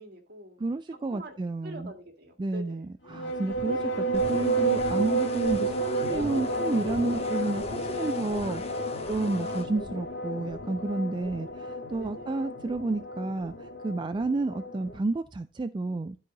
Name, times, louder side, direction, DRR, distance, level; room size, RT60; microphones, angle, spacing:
voice 1, 0.0-0.6 1.1-1.3 1.6-2.9 7.1-7.2 12.0-12.4, right 1 dB, 60° right, 2.0 m, -44 dB
voice 2, 0.6-1.9 2.4-16.2, right 2 dB, 25° right, 0.3 m, -31 dB
sound 1, 3.1-15.0, right 2 dB, 85° left, 1.9 m, -31 dB
sound 2, 4.1-9.7, left 4 dB, 35° left, 0.9 m, -40 dB
12.5 x 4.7 x 3.8 m
head